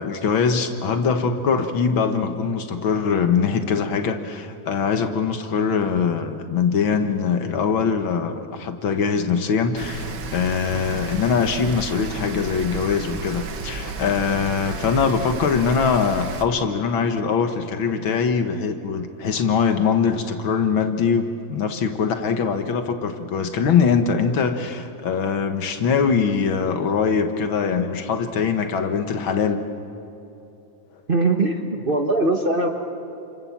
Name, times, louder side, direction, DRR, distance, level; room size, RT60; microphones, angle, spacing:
voice 1, 0.0-29.6, left 6 dB, 90° left, 7 dB, 2.2 m, -22 dB
Rain, 9.8-16.4, right 4 dB, 80° right, 2.3 m, -32 dB
voice 2, 31.1-32.7, right 2 dB, 30° right, 3 dB, 1.4 m, -21 dB
29.5 x 27.0 x 7.4 m, 2.9 s
omnidirectional pair, 2.1 m